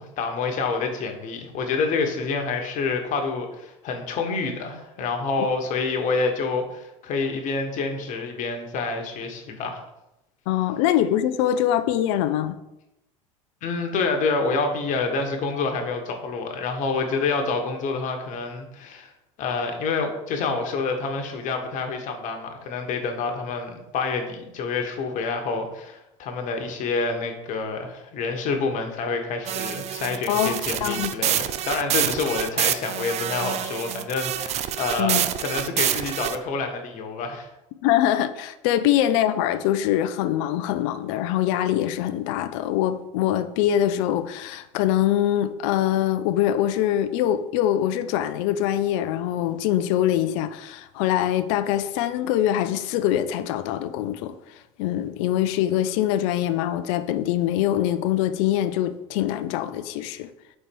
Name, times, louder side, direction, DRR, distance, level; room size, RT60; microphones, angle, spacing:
voice 1, 0.0-9.8 13.6-19.1 19.4-37.5, left 4 dB, 50° left, 1.3 m, -27 dB
voice 2, 10.5-12.6 30.3-31.1 35.0-35.3 37.8-54.4 54.8-60.3, left 11 dB, 70° left, 0.5 m, -23 dB
sound 1, 29.5-36.4, right 11 dB, 40° right, 0.5 m, -27 dB
4.4 x 4.3 x 5.3 m
hypercardioid pair, 90°, 16 cm